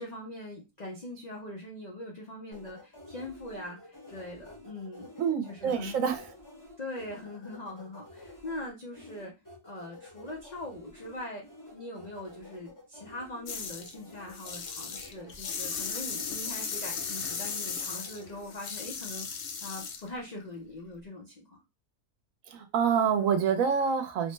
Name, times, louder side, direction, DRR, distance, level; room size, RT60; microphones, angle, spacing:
voice 1, 0.0-5.1 5.5-6.0 6.8-9.3 9.6-11.4 11.7-21.6, left 1 dB, 90° left, -1 dB, 0.3 m, -42 dB
sound 1, 2.5-18.6, left 2 dB, 25° left, 0.4 m, -50 dB
voice 2, 5.2-6.3 22.5-24.3, right 7 dB, 70° right, 7 dB, 0.9 m, -27 dB
sound 2, 13.5-13.9 14.3-20.1, left 6 dB, 65° left, 0.7 m, -36 dB
3.1 x 2.1 x 3.1 m, 0.25 s
omnidirectional pair, 1.6 m